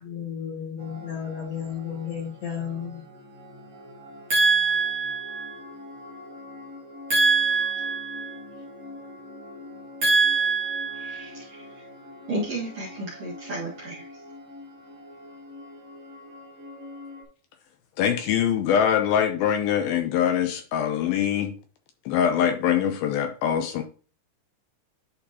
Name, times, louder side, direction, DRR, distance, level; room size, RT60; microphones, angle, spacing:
voice 1, 0.0-3.0, left 8 dB, 50° left, 2.6 m, -33 dB
sound 1, 0.8-17.3, left 1 dB, 85° right, 1.3 m, -44 dB
voice 2, 4.3-5.6 7.1-8.4 10.0-11.6 12.3-14.1, right 4 dB, 50° right, 2.1 m, -25 dB
voice 3, 18.0-21.6 22.1-23.8, left 9 dB, 80° left, 2.3 m, -23 dB
10.5 x 4.3 x 2.8 m
omnidirectional pair, 4.5 m